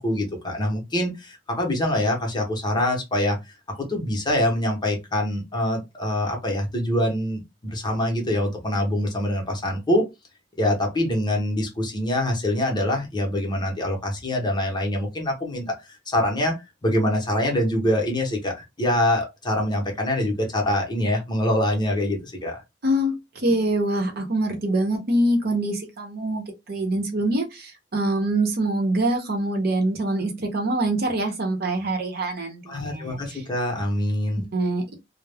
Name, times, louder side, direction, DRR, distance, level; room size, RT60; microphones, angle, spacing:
voice 1, 0.0-3.4 3.7-10.1 10.6-16.6 16.8-22.6 32.7-34.4, left 1 dB, 25° left, 0.8 m, -24 dB
voice 2, 22.8-33.4 34.5-34.9, right 1 dB, 60° right, 0.7 m, -24 dB
2.3 x 2.0 x 3.3 m
head